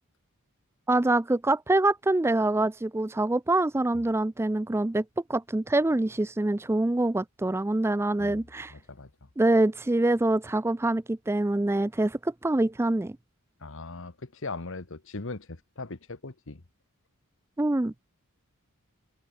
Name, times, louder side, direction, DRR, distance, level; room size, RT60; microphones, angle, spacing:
voice 1, 0.9-5.0 5.3-8.7 9.4-13.2 17.6-17.9, right 2 dB, 10° right, 0.4 m, -25 dB
voice 2, 8.7-9.3 13.6-16.6, left 3 dB, 60° left, 1.3 m, -39 dB
head